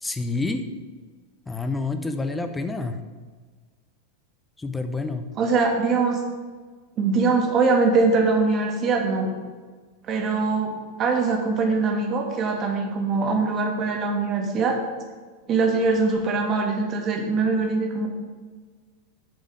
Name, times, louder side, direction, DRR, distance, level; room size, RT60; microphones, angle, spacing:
voice 1, 0.0-0.6 1.5-3.0 4.6-5.3, left 3 dB, 10° left, 8 dB, 0.8 m, -28 dB
voice 2, 5.4-6.3 7.0-9.3 10.1-14.8 15.5-18.1, right 4 dB, 30° right, 2 dB, 1.9 m, -22 dB
8.9 x 5.4 x 7.7 m, 1.4 s
figure-of-eight pair, 90°, 0 cm